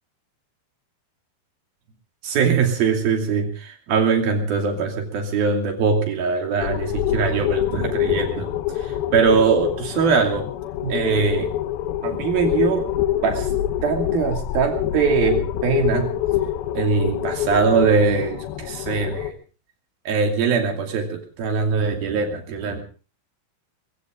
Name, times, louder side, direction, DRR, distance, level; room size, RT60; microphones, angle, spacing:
voice 1, 2.2-10.5 10.8-11.5 12.0-12.9 13.2-16.2 16.7-19.4 20.1-22.8, right 5 dB, 55° right, 4 dB, 4.2 m, -22 dB
sound 1, 6.6-19.3, left 12 dB, 75° left, 2.3 m, -26 dB
24.0 x 15.5 x 3.7 m, 0.37 s
omnidirectional pair, 5.6 m